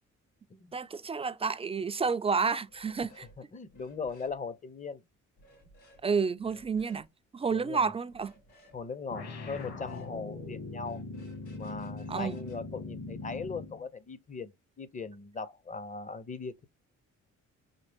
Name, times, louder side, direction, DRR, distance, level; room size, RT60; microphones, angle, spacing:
voice 1, 0.7-3.3 6.0-7.1 7.3-8.3 12.1-12.4, right 5 dB, 20° right, 0.3 m, -30 dB
sound 1, 2.7-3.4 3.7-4.4 5.4-6.0 6.4-7.1 8.1-8.8 9.4-10.1 10.7-13.4, left 1 dB, 85° left, 2.3 m, -59 dB
voice 2, 3.5-5.0 7.5-7.8 8.7-11.0 11.5-16.6, left 4 dB, 25° left, 0.6 m, -39 dB
sound 2, 9.1-13.8, left 3 dB, 55° left, 1.6 m, -41 dB
4.1 x 3.2 x 3.4 m
cardioid pair, 90°, 30 cm